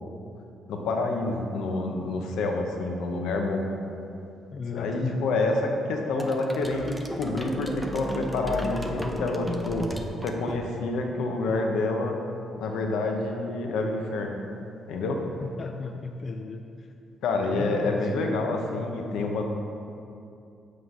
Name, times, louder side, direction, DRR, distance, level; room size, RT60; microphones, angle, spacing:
voice 1, 0.7-3.7 4.7-9.9 10.2-12.2 12.6-14.4 14.9-15.2 17.2-19.4, left 2 dB, 80° left, 2 dB, 0.7 m, -28 dB
voice 2, 4.5-5.2 15.4-16.6 17.4-18.3, left 4 dB, 45° left, 4 dB, 0.3 m, -34 dB
sound 1, 6.2-11.0, equal, 5° right, 0.5 m, -35 dB
7.9 x 3.2 x 5.3 m, 2.6 s
cardioid pair, 90°, 0 cm